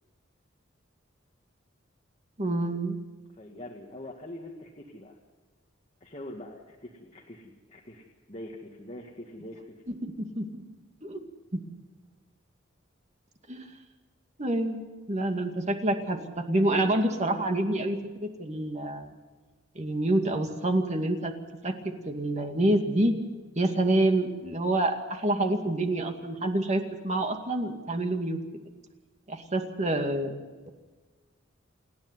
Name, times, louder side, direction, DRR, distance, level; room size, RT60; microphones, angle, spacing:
voice 1, 2.4-3.0 9.9-10.0 10.4-10.6 11.0-11.2 11.5-11.6 13.5-13.7 14.4-14.8 15.1-19.1 19.8-21.3 21.6-21.7 22.0-23.1 23.6-28.4 29.3-30.3, right 1 dB, 35° right, 5 dB, 2.3 m, -27 dB
voice 2, 3.4-5.2 6.0-9.8, left 1 dB, 35° left, 0 dB, 1.9 m, -44 dB
29.0 x 10.5 x 9.7 m, 1.3 s
head